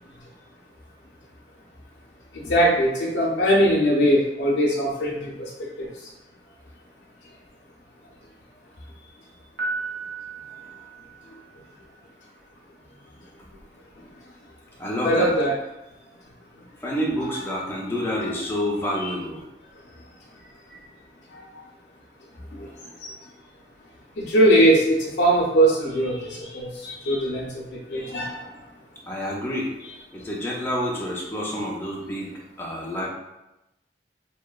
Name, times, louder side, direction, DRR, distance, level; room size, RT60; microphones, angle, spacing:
voice 1, 2.3-5.5 5.8-5.9 15.0-15.6 17.2-17.3 18.1-18.3 19.0-19.1 21.3-21.4 22.5-22.7 23.0-23.1 24.2-28.5, right 1 dB, 80° left, -4 dB, 0.5 m, -21 dB
Piano, 9.6-11.7, right 3 dB, 90° right, 0.7 m, -34 dB
voice 2, 14.8-15.3 16.8-19.4 29.1-29.7 30.1-32.3 32.6-33.1, equal, 15° left, -4 dB, 0.4 m, -28 dB
2.8 x 2.1 x 2.3 m, 0.94 s
head